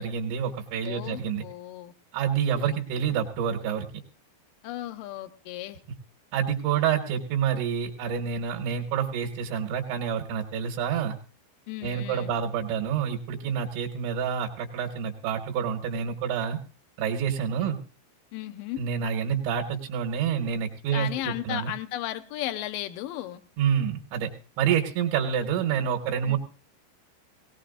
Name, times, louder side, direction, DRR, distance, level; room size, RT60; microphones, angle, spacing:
voice 1, 0.0-1.4 2.1-3.9 6.3-11.2 11.8-16.6 17.0-17.8 18.8-21.7 23.6-24.3 24.6-26.4, right 8 dB, 85° right, 3 dB, 3.5 m, -28 dB
voice 2, 0.8-1.9 2.6-2.7 4.6-5.8 11.7-12.4 17.6-17.8 18.3-18.8 20.9-23.4 26.3-26.4, left 13 dB, 80° left, 9 dB, 2.0 m, -35 dB
18.5 x 18.5 x 2.5 m, 0.35 s
omnidirectional pair, 5.1 m